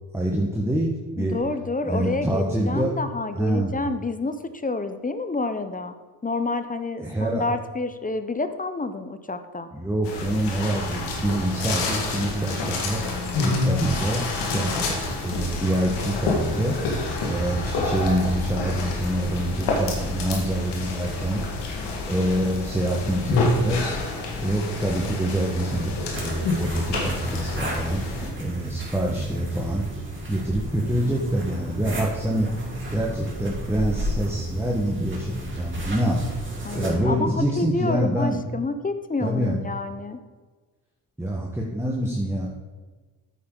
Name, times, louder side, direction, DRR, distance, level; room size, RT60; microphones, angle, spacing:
voice 1, 0.1-1.4 1.8-2.9 3.3-3.7 7.0-7.4 9.7-13.0 13.4-16.8 17.2-21.4 22.0-24.0 24.4-28.1 28.4-29.9 30.3-32.6 32.9-36.2 36.7-38.5 39.2-39.6 41.2-42.5, right 1 dB, 5° right, -2 dB, 1.4 m, -26 dB
voice 2, 1.2-5.9 6.2-9.7 36.6-40.2, left 3 dB, 20° left, 10 dB, 0.7 m, -29 dB
sound 1, 10.0-28.3, left 2 dB, 85° left, 2.0 m, -28 dB
sound 2, 26.1-36.9, right 1 dB, 30° right, 3.1 m, -32 dB
9.3 x 8.5 x 3.9 m, 1.3 s
cardioid pair, 70°, 40 cm